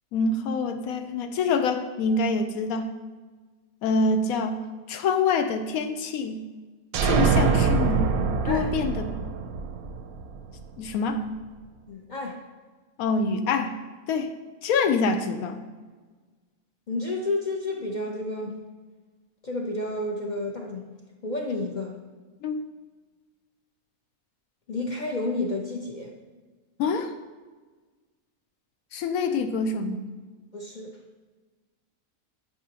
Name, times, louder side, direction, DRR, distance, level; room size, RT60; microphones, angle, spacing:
voice 1, 0.1-2.9 3.8-4.6 4.9-6.4 7.0-8.2 8.4-9.1 10.8-11.2 13.0-13.7 14.1-14.3 14.6-15.6 22.4-22.6 26.8-27.1 28.9-30.1, left 4 dB, 85° left, 8 dB, 1.1 m, -26 dB
sound 1, 6.9-10.6, right 5 dB, 90° right, 1.1 m, -24 dB
voice 2, 8.4-8.7 11.9-12.4 16.9-18.6 19.4-20.9 21.2-21.9 24.7-26.1 30.5-31.0, left 2 dB, 50° left, 1 dB, 0.6 m, -30 dB
9.2 x 4.8 x 2.9 m, 1.4 s
omnidirectional pair, 1.5 m